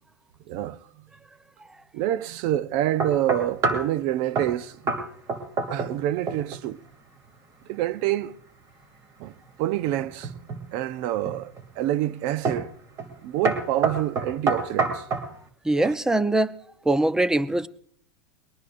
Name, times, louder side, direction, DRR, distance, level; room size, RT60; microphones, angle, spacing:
voice 1, 0.5-0.8 1.9-5.0 5.7-6.8 7.7-8.4 9.2-9.3 9.6-10.3 10.7-12.7 13.2-15.1 15.8-15.9, right 13 dB, 50° right, 0.7 m, -27 dB
sound 1, 3.0-3.9 4.3-4.6 4.9-5.0 5.3-6.0 6.3-6.6 10.0-10.6 11.2-11.7 12.4-12.7 13.0-13.2 13.4-15.3, right 4 dB, 30° right, 2.6 m, -26 dB
voice 2, 15.6-16.6 16.8-17.7, right 2 dB, 5° right, 0.6 m, -22 dB
21.5 x 18.5 x 2.6 m
hypercardioid pair, 115°, 10 cm